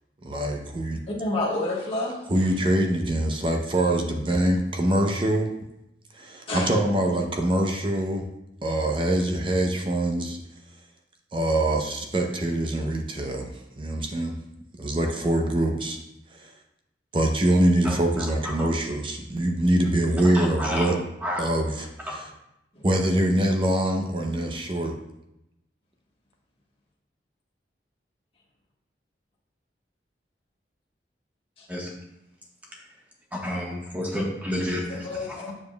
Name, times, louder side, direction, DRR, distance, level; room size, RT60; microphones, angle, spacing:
voice 1, 0.2-1.0 2.3-5.5 6.1-8.2 8.6-10.4 11.3-14.4 14.8-16.0 16.3-16.5 17.1-21.0 21.4-21.9 22.8-24.9, right 1 dB, 30° right, 3 dB, 0.6 m, -24 dB
voice 2, 1.2-2.2 6.5-6.7 22.8-22.9 31.6-31.7 34.9-35.5, left 2 dB, 35° left, -4 dB, 1.3 m, -29 dB
voice 3, 17.8-18.3 18.6-18.7 20.3-20.9 21.2-21.5 22.1-22.2 31.7-31.9 33.4-35.4, left 1 dB, 10° right, -3 dB, 1.3 m, -30 dB
7.3 x 6.9 x 2.3 m, 0.87 s
head